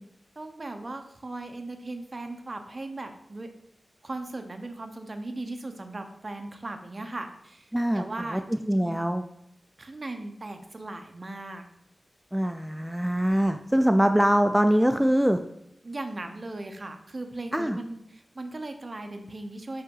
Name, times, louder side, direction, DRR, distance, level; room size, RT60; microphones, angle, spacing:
voice 1, 0.4-3.5 4.0-9.0 9.8-11.6 15.8-19.8, right 2 dB, 40° right, 6 dB, 0.9 m, -38 dB
voice 2, 7.7-8.0 8.3-8.4 8.7-9.2 12.3-15.4 17.5-17.8, equal, 5° right, 7 dB, 0.4 m, -23 dB
5.7 x 5.6 x 5.5 m, 0.78 s
wide cardioid pair, 80°, 0 cm